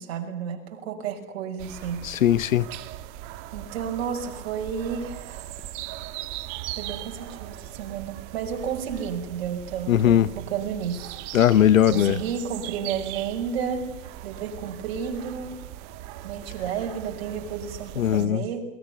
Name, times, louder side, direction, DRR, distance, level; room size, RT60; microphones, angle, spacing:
voice 1, 0.0-2.0 3.5-5.5 6.8-11.2 11.9-13.9 14.2-15.6 16.2-18.7, right 7 dB, 50° right, 5.8 m, -32 dB
sound 1, 1.6-18.3, right 14 dB, 30° right, 1.3 m, -39 dB
voice 2, 2.0-2.7 9.9-10.3 11.3-12.2 18.0-18.5, left 10 dB, 80° left, 1.1 m, -19 dB
28.0 x 21.5 x 7.0 m
hypercardioid pair, 150°, 39 cm